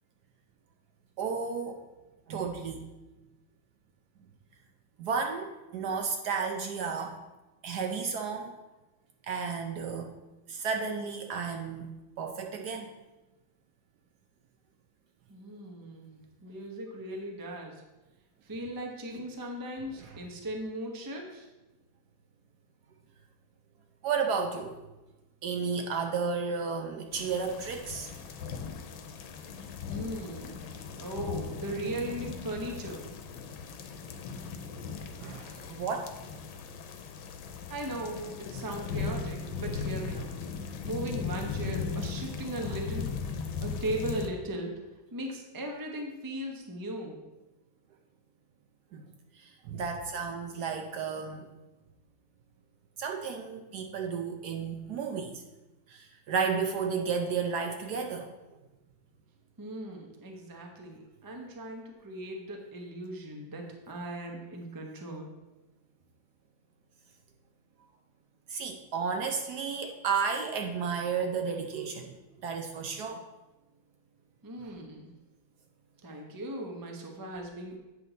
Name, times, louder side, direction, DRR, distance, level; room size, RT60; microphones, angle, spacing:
voice 1, 1.2-1.8 2.3-2.8 5.0-7.2 7.6-8.5 9.3-10.1 10.5-11.9 12.2-12.9 19.9-20.1 24.0-24.8 25.4-28.1 35.2-36.2 42.6-42.7 48.9-49.0 49.3-51.5 53.0-55.4 55.9-58.3 68.5-72.1 72.4-73.2, right 5 dB, 65° right, 4 dB, 1.1 m, -32 dB
voice 2, 15.3-17.8 18.4-21.5 29.9-30.7 31.0-33.1 37.7-40.3 40.8-43.1 43.6-44.7 45.1-47.2 59.6-65.3 74.4-75.1 76.0-77.7, right 1 dB, 20° right, 1 dB, 0.5 m, -38 dB
sound 1, 27.1-44.3, left 5 dB, 90° left, 1.5 m, -38 dB
8.4 x 5.9 x 4.0 m, 1.1 s
omnidirectional pair, 2.1 m